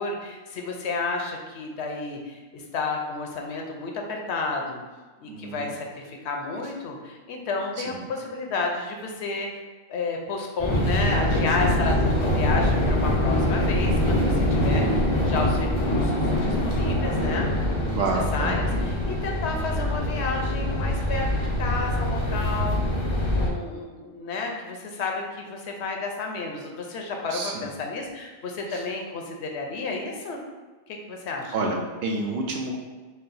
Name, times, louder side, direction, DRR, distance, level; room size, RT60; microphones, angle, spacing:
voice 1, 0.0-4.8 5.2-9.6 9.9-17.5 17.9-18.0 18.3-23.0 23.3-30.4 30.9-31.5, left 3 dB, 75° left, 2 dB, 0.9 m, -31 dB
voice 2, 5.3-5.7 7.8-8.1 14.9-15.4 17.9-18.6 27.3-27.7 28.7-28.8 31.5-32.8, right 3 dB, 65° right, 1 dB, 0.8 m, -29 dB
sound 1, 10.6-23.5, left 1 dB, 45° left, 0.4 m, -24 dB
4.2 x 2.0 x 3.9 m, 1.3 s
omnidirectional pair, 1.2 m